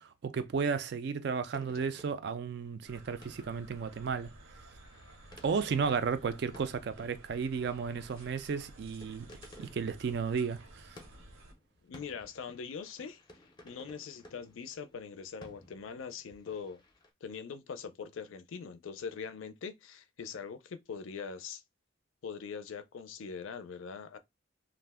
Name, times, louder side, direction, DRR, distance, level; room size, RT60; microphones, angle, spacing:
voice 1, 0.0-4.3 5.4-9.3 9.6-11.0, right 5 dB, 55° right, 0.3 m, -33 dB
sound 1, 1.0-1.2 1.5-17.1, left 1 dB, 20° left, 0.5 m, -57 dB
sound 2, 2.8-11.5, right 1 dB, 80° right, 0.7 m, -54 dB
voice 2, 11.8-13.2 13.6-16.8 17.2-21.6 22.2-24.2, left 6 dB, 75° left, 0.4 m, -42 dB
2.4 x 2.1 x 3.4 m
head